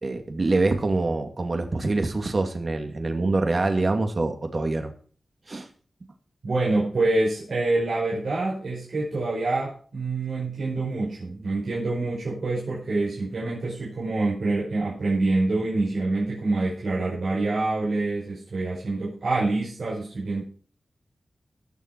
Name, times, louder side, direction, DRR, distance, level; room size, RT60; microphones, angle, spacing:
voice 1, 0.0-4.9 5.5-5.7, right 2 dB, 50° right, 5 dB, 2.5 m, -25 dB
voice 2, 6.4-20.4, right 2 dB, 75° right, -7 dB, 5.6 m, -26 dB
20.5 x 7.4 x 4.6 m, 0.43 s
cardioid pair, 65°, 0 cm